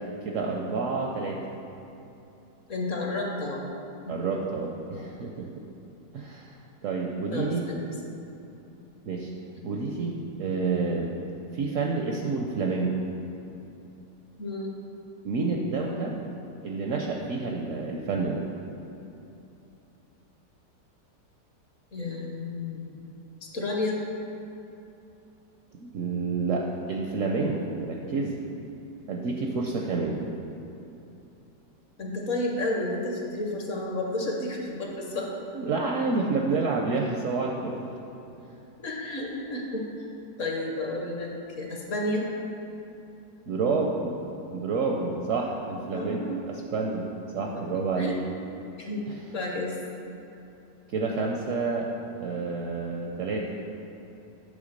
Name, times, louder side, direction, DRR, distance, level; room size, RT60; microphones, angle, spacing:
voice 1, 0.2-1.4 4.1-5.5 6.1-6.6 6.8-7.6 9.1-9.3 9.6-11.1 11.5-12.9 15.2-16.1 16.6-18.4 25.7-28.4 29.1-30.2 35.1-35.2 35.5-37.9 43.5-44.2 44.5-47.1 47.3-48.2 49.1-49.2 50.9-51.9 52.2-53.6, right 4 dB, 70° right, 0 dB, 0.8 m, -29 dB
voice 2, 2.7-3.6 4.0-4.5 7.3-7.9 9.6-9.7 14.4-14.8 21.9-23.1 23.4-24.0 32.0-35.3 38.8-39.9 40.4-42.3 45.9-46.4 47.4-47.7 48.0-48.2 48.8-49.8, left 2 dB, 55° left, -1 dB, 1.1 m, -31 dB
8.8 x 3.4 x 6.4 m, 2.9 s
omnidirectional pair, 1.8 m